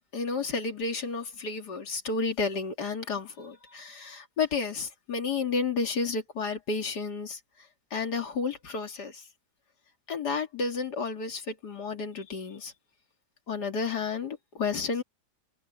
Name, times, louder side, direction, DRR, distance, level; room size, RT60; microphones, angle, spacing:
voice 1, 0.1-9.3 10.1-12.7 13.5-15.0, left 4 dB, 90° left, 2.9 m, -31 dB
omnidirectional pair, 1.7 m